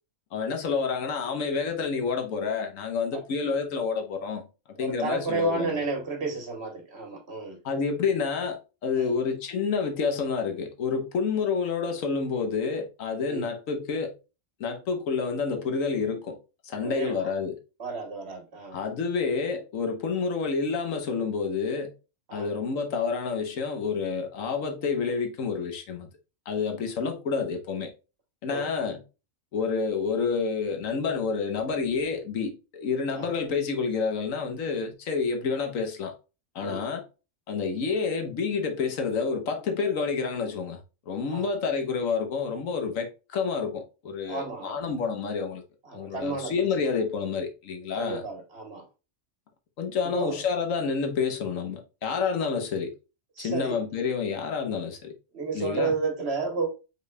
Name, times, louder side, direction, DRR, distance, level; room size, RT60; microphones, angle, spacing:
voice 1, 0.3-4.5 4.8-5.8 7.6-14.1 14.6-16.4 16.6-17.6 18.7-21.9 22.3-26.1 26.5-27.9 28.4-29.0 29.5-36.1 36.5-37.1 37.5-40.8 41.1-45.6 45.9-48.2 49.8-52.9 53.4-55.1 55.5-56.0, left 5 dB, 85° left, 1.3 m, -29 dB
voice 2, 4.8-7.6 8.9-9.2 13.3-13.5 16.8-17.2 17.8-18.8 22.3-22.5 28.5-28.7 33.1-33.3 36.6-36.8 41.3-41.5 44.3-44.8 45.8-46.9 48.0-48.8 50.1-50.4 53.4-53.8 55.3-56.7, right 3 dB, 55° right, 1.5 m, -32 dB
5.1 x 4.6 x 2.2 m
omnidirectional pair, 1.4 m